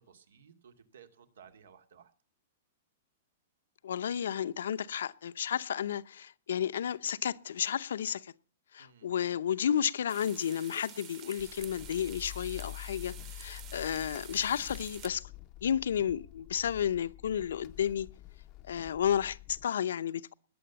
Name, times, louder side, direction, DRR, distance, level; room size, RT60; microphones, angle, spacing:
voice 1, 0.1-2.1 8.8-9.1, right 7 dB, 85° right, 2.4 m, -57 dB
voice 2, 3.8-8.3 8.7-15.2 15.6-18.1 18.7-20.3, left 9 dB, 80° left, 0.7 m, -32 dB
sound 1, 10.1-15.1, right 10 dB, 25° right, 1.2 m, -49 dB
sound 2, 11.4-19.6, left 19 dB, 25° left, 0.6 m, -47 dB
20.0 x 7.8 x 6.9 m
hypercardioid pair, 175°, 0 cm